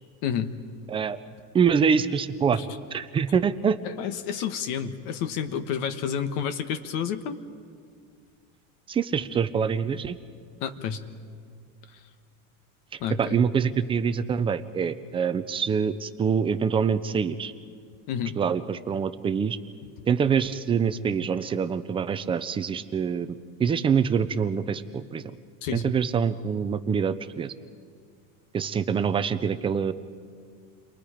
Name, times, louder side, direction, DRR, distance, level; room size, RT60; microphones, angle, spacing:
voice 1, 0.2-0.5 2.5-2.8 3.8-7.4 10.6-11.0 11.9-12.0 13.0-13.4 18.1-18.4 25.6-25.9, left 8 dB, 55° left, 9 dB, 1.4 m, -30 dB
voice 2, 1.5-2.6 2.9-3.8 8.9-10.2 13.2-17.5 18.4-19.6 20.1-25.2 25.7-27.5 28.5-29.9, right 6 dB, 15° right, 12 dB, 0.5 m, -25 dB
30.0 x 23.0 x 5.0 m, 2.1 s
cardioid pair, 155°, 39 cm